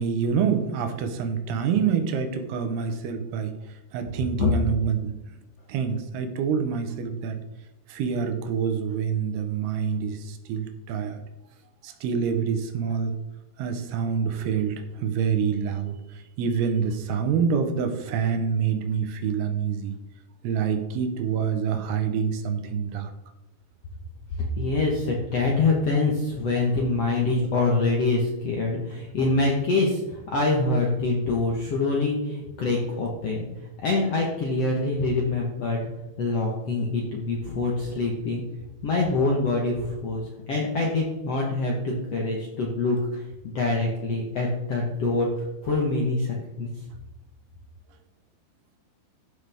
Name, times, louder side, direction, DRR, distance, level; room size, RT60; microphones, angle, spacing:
voice 1, 0.0-5.4 5.7-7.4 7.9-11.2 11.8-13.2 13.6-20.0 20.4-23.1, right 6 dB, 75° right, 8 dB, 2.9 m, -27 dB
voice 2, 24.6-33.5 33.8-35.8 36.2-38.4 38.8-40.2 40.5-45.3 45.6-46.7, left 3 dB, 65° left, -2 dB, 1.6 m, -25 dB
14.0 x 6.4 x 3.5 m, 0.99 s
omnidirectional pair, 4.7 m